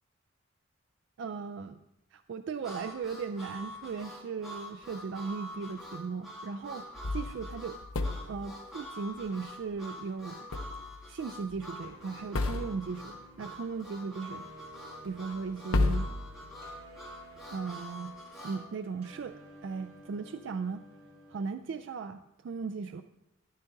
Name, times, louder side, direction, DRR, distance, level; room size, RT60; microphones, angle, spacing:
voice 1, 1.2-1.8 2.1-6.9 7.1-7.8 8.3-10.5 11.1-14.5 15.0-16.1 17.5-18.2 18.4-20.8 21.3-23.0, right 5 dB, 60° right, 9 dB, 0.3 m, -37 dB
Harmonica, 2.6-18.6, left 1 dB, ahead, 2.3 m, -45 dB
sound 1, 7.0-8.5 10.5-11.2 11.5-11.6 12.3-13.1 15.0-15.1 15.7-16.9, left 2 dB, 90° left, 0.7 m, -32 dB
sound 2, 11.8-21.4, right 2 dB, 85° right, 3.7 m, -54 dB
13.0 x 9.8 x 2.6 m, 0.88 s
head